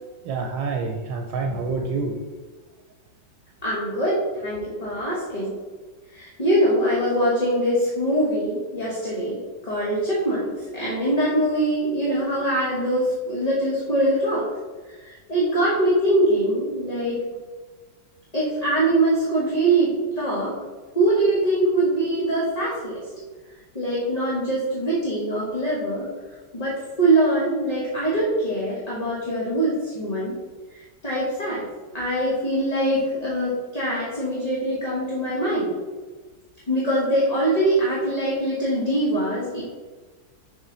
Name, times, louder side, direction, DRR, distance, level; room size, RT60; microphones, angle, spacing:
voice 1, 0.2-2.2 4.6-4.7, right 4 dB, 80° right, 3 dB, 1.4 m, -27 dB
voice 2, 3.6-4.2 4.4-5.5 6.1-14.5 15.0-17.2 18.3-20.6 20.9-23.2 23.7-26.1 26.5-30.4 30.7-31.7 31.9-35.7 36.7-39.6, right 1 dB, 25° left, -6 dB, 1.1 m, -23 dB
7.0 x 4.2 x 3.9 m, 1.4 s
omnidirectional pair, 2.0 m